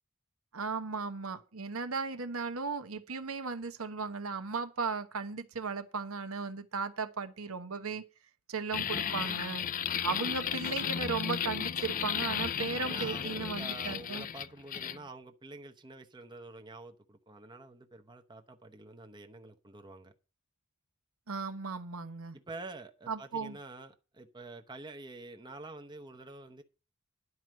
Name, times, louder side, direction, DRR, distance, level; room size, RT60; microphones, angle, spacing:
voice 1, 0.5-8.0 8.5-9.7 10.0-14.2 21.3-22.4 23.1-23.6, right 4 dB, 75° right, 1.0 m, -36 dB
sound 1, 8.7-15.0, left 8 dB, 40° left, 0.4 m, -34 dB
voice 2, 12.8-20.1 22.3-26.6, right 2 dB, 20° right, 0.8 m, -47 dB
11.0 x 4.7 x 7.5 m
head